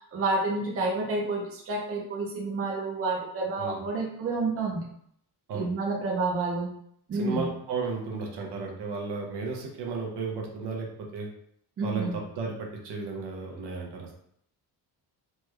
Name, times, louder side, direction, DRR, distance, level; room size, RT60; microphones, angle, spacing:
voice 1, 0.0-4.8 5.5-6.7 7.1-7.5 11.8-12.2, right 3 dB, 35° right, -2 dB, 0.6 m, -29 dB
voice 2, 7.1-10.9 11.1-11.3 11.8-14.1, right 4 dB, 85° right, 0 dB, 0.8 m, -34 dB
3.3 x 2.2 x 3.2 m, 0.70 s
wide cardioid pair, 180°, 40 cm